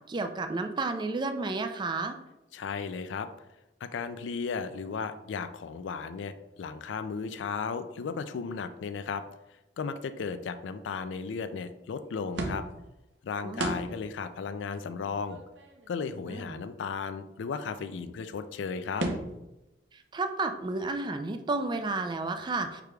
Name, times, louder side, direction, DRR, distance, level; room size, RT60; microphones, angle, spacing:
voice 1, 0.1-2.2 13.4-13.9 16.3-16.6 19.9-22.8, right 3 dB, 25° right, 8 dB, 0.3 m, -32 dB
voice 2, 2.5-3.3 3.8-9.2 9.8-12.6 13.2-15.4 15.9-19.1, left 5 dB, 80° left, 10 dB, 0.4 m, -35 dB
sound 1, 12.3-12.9 13.6-14.1 14.4-14.5 14.7-14.8 15.2-16.2 18.1-18.2 18.4-18.5 19.0-19.5, right 2 dB, 70° right, 0.7 m, -34 dB
5.0 x 4.7 x 2.3 m, 0.95 s
head